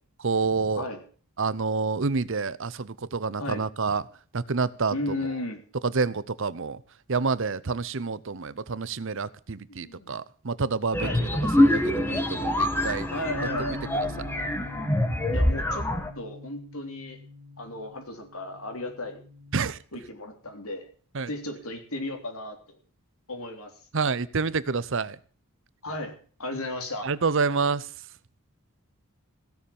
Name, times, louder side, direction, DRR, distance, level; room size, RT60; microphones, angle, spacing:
voice 1, 0.2-0.8 1.4-4.0 4.3-5.2 5.8-6.8 7.1-11.3 11.6-13.1 19.5-19.8 21.1-21.3 23.9-25.2 27.0-27.9, right 4 dB, 60° right, 18 dB, 0.7 m, -28 dB
voice 2, 4.9-5.6 9.7-10.1 11.0-11.2 12.8-13.9 15.3-15.8 16.1-17.2 17.6-19.2 19.9-20.9 21.3-22.6 23.3-23.7 25.8-27.1, left 2 dB, 75° left, 6 dB, 3.3 m, -35 dB
sound 1, 10.9-16.1, left 1 dB, 10° left, 1.5 m, -25 dB
Bass guitar, 13.3-19.6, left 1 dB, 85° right, 3.4 m, -43 dB
16.0 x 7.0 x 8.6 m, 0.43 s
head